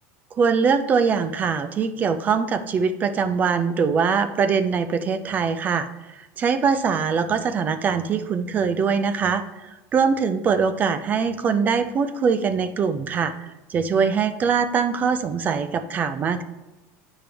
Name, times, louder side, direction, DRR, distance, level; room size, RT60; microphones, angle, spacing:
voice 1, 0.3-16.4, right 6 dB, 20° right, 11 dB, 0.4 m, -22 dB
8.8 x 5.1 x 3.4 m, 1.0 s
supercardioid pair, 165°, 8 cm